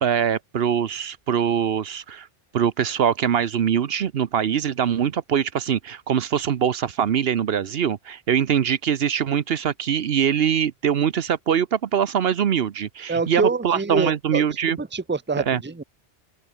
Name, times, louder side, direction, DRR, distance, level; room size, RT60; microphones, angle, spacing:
voice 1, 0.0-2.3 2.5-14.8 15.4-15.6, right 8 dB, 70° right, 1.0 m, -23 dB
voice 2, 13.1-14.5 14.8-15.8, right 4 dB, 10° right, 0.8 m, -25 dB
open air
omnidirectional pair, 1.1 m